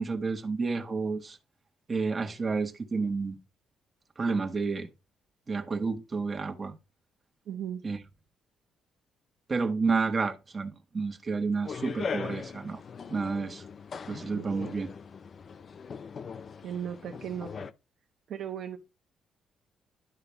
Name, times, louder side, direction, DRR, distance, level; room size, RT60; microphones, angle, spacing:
voice 1, 0.0-1.4 1.9-3.4 4.2-4.9 5.5-6.8 7.8-8.0 9.5-12.8 13.1-13.6 14.1-14.9, right 4 dB, 35° right, 1.3 m, -30 dB
voice 2, 7.5-7.9 14.3-14.6 16.6-17.7 18.3-18.8, right 9 dB, 70° right, 1.0 m, -37 dB
sound 1, 11.6-17.7, left 5 dB, 45° left, 0.6 m, -40 dB
11.5 x 4.0 x 3.4 m
cardioid pair, 90°, 0 cm